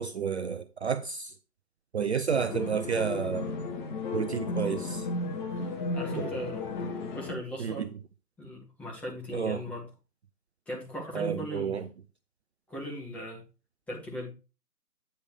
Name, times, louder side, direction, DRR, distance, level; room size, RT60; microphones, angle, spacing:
voice 1, 0.0-1.3 1.9-3.6 4.1-5.1 6.2-6.3 7.6-7.9 9.3-9.6 11.1-11.9, right 6 dB, 45° right, 0.5 m, -30 dB
sound 1, 2.3-7.3, left 3 dB, 30° left, 1.3 m, -34 dB
voice 2, 5.9-6.7 7.1-7.8 8.4-9.9 10.7-11.8 12.7-13.4 13.9-14.3, equal, 5° left, 1.0 m, -38 dB
9.2 x 3.2 x 6.2 m
figure-of-eight pair, 135°, 48 cm